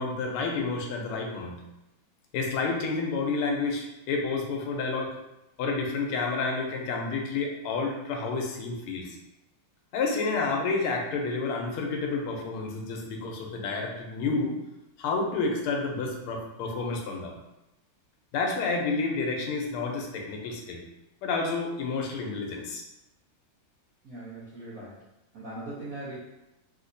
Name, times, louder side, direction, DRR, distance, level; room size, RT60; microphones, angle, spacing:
voice 1, 0.0-1.6 2.3-5.1 5.6-9.2 9.9-14.6 15.0-17.3 18.3-20.8 21.2-22.8, left 4 dB, 85° left, 0 dB, 1.5 m, -30 dB
voice 2, 24.0-25.0 25.3-26.2, right 2 dB, 60° right, -10 dB, 1.0 m, -40 dB
3.6 x 2.8 x 2.6 m, 0.96 s
omnidirectional pair, 2.4 m